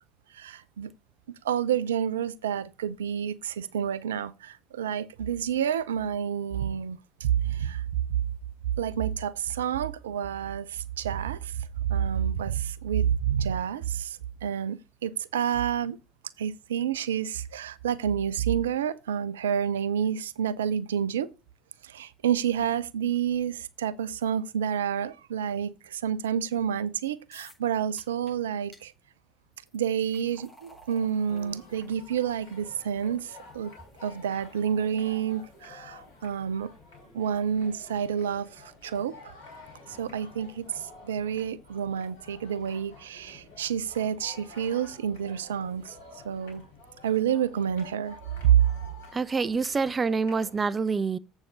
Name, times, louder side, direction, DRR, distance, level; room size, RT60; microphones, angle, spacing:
voice 1, 0.3-0.9 1.4-8.0 8.8-14.8 15.0-16.0 16.4-21.3 21.8-28.9 29.7-33.7 34.0-36.7 37.1-39.3 39.9-45.9 46.2-46.6 47.0-48.2 48.4-48.7, right 9 dB, 75° right, 0.5 m, -29 dB
sound 1, 27.3-27.7 28.0-28.3 28.7-28.8 29.5-36.7, equal, 20° left, 5.8 m, -58 dB
sound 2, 31.3-50.6, left 3 dB, 70° left, 3.5 m, -50 dB
voice 2, 49.1-51.2, right 4 dB, 25° right, 0.7 m, -26 dB
7.8 x 7.2 x 3.9 m
figure-of-eight pair, 60°, 0 cm